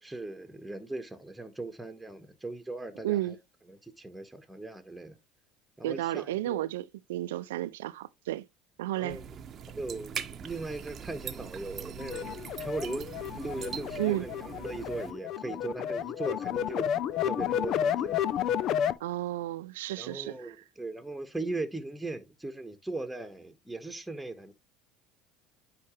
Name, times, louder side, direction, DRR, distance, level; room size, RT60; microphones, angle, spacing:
voice 1, 0.0-3.4 3.7-5.2 5.8-6.6 9.0-9.3 9.7-16.9 17.2-18.2 20.0-24.5, right 2 dB, 5° right, 1.3 m, -39 dB
voice 2, 3.0-3.4 5.8-8.5 8.8-9.2 14.0-14.3 19.0-20.5, right 15 dB, 80° right, 0.4 m, -32 dB
sound 1, 9.1-15.1, right 8 dB, 45° right, 0.8 m, -42 dB
sound 2, 12.0-18.9, left 9 dB, 55° left, 0.5 m, -31 dB
9.7 x 3.3 x 3.1 m
hypercardioid pair, 75°, 0 cm